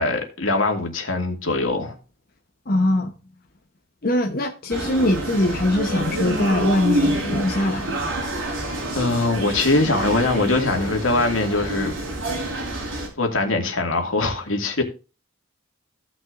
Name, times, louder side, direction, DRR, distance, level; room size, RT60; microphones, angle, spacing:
voice 1, 0.0-1.9 8.9-11.9 13.2-14.8, left 2 dB, 80° left, 2.2 m, -22 dB
voice 2, 2.7-3.1 4.0-8.0, left 1 dB, 45° left, 1.0 m, -22 dB
sound 1, 4.7-13.1, right 1 dB, 70° right, 4.6 m, -27 dB
16.5 x 6.1 x 2.6 m
head